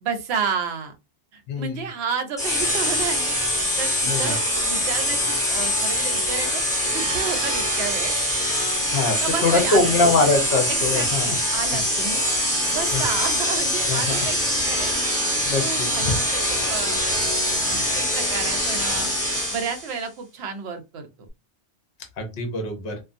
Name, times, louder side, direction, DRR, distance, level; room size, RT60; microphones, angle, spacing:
voice 1, 0.0-0.9 1.3-6.6 6.9-8.2 9.0-9.9 10.7-12.2 12.7-14.9 15.6-16.4 16.7-17.0 17.4-19.1 19.5-21.1, right 6 dB, 70° right, 6 dB, 0.8 m, -31 dB
voice 2, 1.5-1.8 4.1-4.3 8.9-11.3 12.9-13.0 13.9-14.3 15.4-16.2 22.2-22.9, left 3 dB, 60° left, 3 dB, 0.9 m, -23 dB
sound 1, 2.4-19.9, equal, 5° left, 1.1 m, -23 dB
2.5 x 2.2 x 2.5 m, 0.26 s
omnidirectional pair, 1.2 m